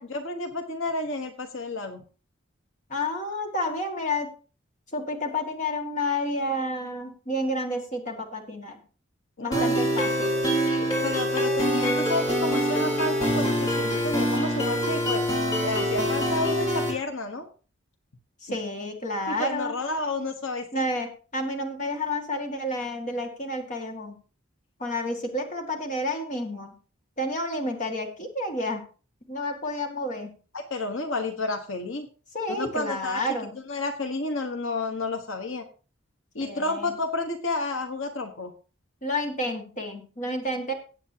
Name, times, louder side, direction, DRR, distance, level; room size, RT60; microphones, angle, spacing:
voice 1, 0.0-2.0 9.4-10.0 10.5-15.2 15.6-17.5 18.5-18.6 19.3-20.8 30.5-32.1 32.5-33.2 33.7-35.6 36.3-38.5, left 2 dB, 75° left, 6 dB, 1.2 m, -31 dB
voice 2, 2.9-4.3 4.9-8.8 9.4-10.3 18.4-19.8 20.7-24.2 24.8-26.7 27.2-28.8 29.3-30.3 32.3-33.5 36.4-36.9 39.0-40.7, left 1 dB, 35° left, 3 dB, 2.0 m, -30 dB
sound 1, 9.5-16.9, equal, 20° left, 3.8 m, -25 dB
17.5 x 7.9 x 2.9 m, 0.37 s
head